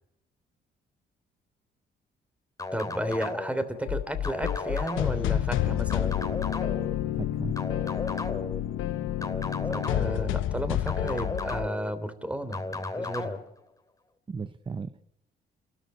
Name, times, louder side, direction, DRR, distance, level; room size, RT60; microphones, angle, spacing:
sound 1, 2.6-3.6 4.2-5.3 5.9-6.9 7.6-8.6 9.2-10.3 10.9-11.9 12.5-13.4, left 2 dB, 15° left, 2.6 m, -35 dB
voice 1, 2.7-6.2 9.7-13.4, equal, 5° right, 10 dB, 3.2 m, -33 dB
sound 2, 3.8-11.7, left 12 dB, 85° left, 1.0 m, -29 dB
voice 2, 7.1-7.6 14.3-15.0, right 5 dB, 25° right, 13 dB, 0.7 m, -36 dB
28.0 x 13.0 x 8.2 m, 0.89 s
cardioid pair, 90°, 20 cm